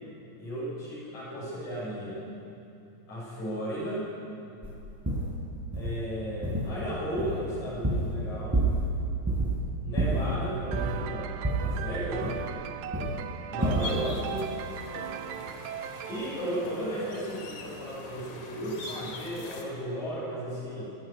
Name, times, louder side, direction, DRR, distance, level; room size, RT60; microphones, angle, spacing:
voice 1, 0.4-2.2 3.1-4.1 5.7-8.6 9.8-12.4 13.5-14.5 16.1-20.9, equal, 80° left, -7 dB, 8.0 m, -35 dB
sound 1, 4.6-4.7 5.1-5.4 5.7-6.0 6.4-6.9 7.2-8.2 8.5-9.0 9.3-9.6 10.0-11.1 11.4-12.7 12.9-13.2 13.6-13.9, right 2 dB, 5° right, 4.2 m, -28 dB
sound 2, 10.7-17.4, right 10 dB, 90° right, 2.3 m, -39 dB
sound 3, 13.6-19.6, left 2 dB, 65° left, 3.7 m, -43 dB
25.5 x 14.5 x 9.7 m, 2.7 s
omnidirectional pair, 3.3 m